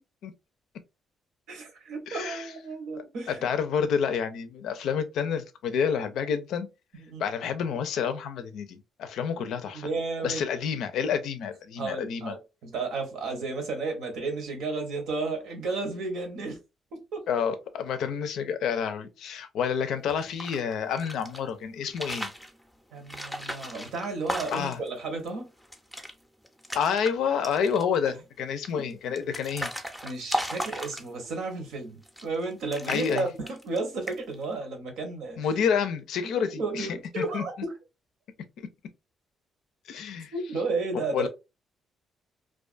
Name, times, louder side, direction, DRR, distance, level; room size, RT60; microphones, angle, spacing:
voice 1, 1.5-3.5 7.0-7.2 9.7-10.4 11.8-16.6 17.1-17.3 22.9-25.5 28.7-28.9 30.0-35.4 36.3-37.7 40.3-41.3, right 3 dB, 80° right, 0.9 m, -33 dB
voice 2, 2.1-2.5 3.3-6.7 7.2-9.9 10.2-12.3 17.3-22.3 24.5-24.8 26.7-29.7 32.9-33.2 35.4-36.9 37.2-37.4 39.9-40.3 40.9-41.3, left 7 dB, 80° left, 0.4 m, -29 dB
sound 1, 20.1-21.4 21.8-22.5 23.1-24.9 25.3-25.4 25.6-26.1 26.4-27.1 27.4-28.0 28.6-31.4 32.0-32.4 32.7-33.8 34.1-34.4, equal, ahead, 0.5 m, -35 dB
2.4 x 2.3 x 2.4 m
cardioid pair, 90°, 0 cm